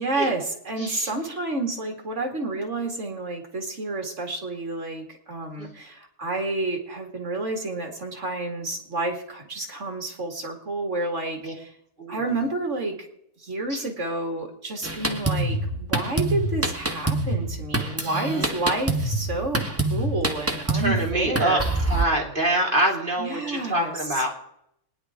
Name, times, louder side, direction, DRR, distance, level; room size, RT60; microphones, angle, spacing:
voice 1, 0.0-11.7 12.1-13.0 13.4-21.6 23.2-23.9, right 2 dB, 50° right, 3 dB, 2.5 m, -30 dB
voice 2, 0.8-1.1 5.6-5.7 11.4-11.5 12.0-12.2 13.7-13.8 15.1-15.4 18.0-18.5 20.7-21.6 21.9-24.3, right 1 dB, 30° right, -1 dB, 2.9 m, -26 dB
Drum kit, 14.8-22.0, right 2 dB, 10° right, 1.1 m, -26 dB
26.0 x 10.0 x 3.7 m, 0.76 s
omnidirectional pair, 1.7 m